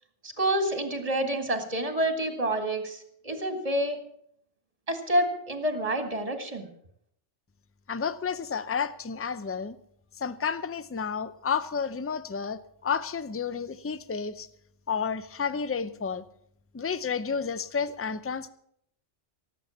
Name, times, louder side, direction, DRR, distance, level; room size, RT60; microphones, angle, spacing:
voice 1, 0.2-4.0 4.9-6.7, right 1 dB, 30° right, 6 dB, 2.1 m, -28 dB
voice 2, 7.9-9.8 10.2-14.5 14.9-16.2 16.7-18.5, left 6 dB, 20° left, 14 dB, 0.4 m, -31 dB
17.5 x 8.3 x 7.2 m, 0.69 s
omnidirectional pair, 1.2 m